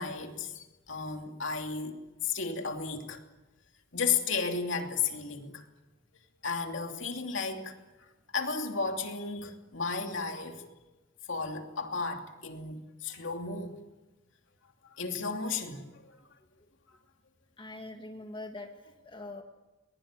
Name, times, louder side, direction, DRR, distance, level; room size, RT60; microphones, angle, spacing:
voice 1, 0.0-3.2 3.9-5.6 6.4-7.8 8.3-10.6 11.3-13.8 14.8-15.9, left 5 dB, 65° left, 2.9 m, -33 dB
voice 2, 16.4-16.7 17.6-19.4, left 2 dB, 25° left, 1.8 m, -44 dB
23.0 x 21.5 x 9.0 m
head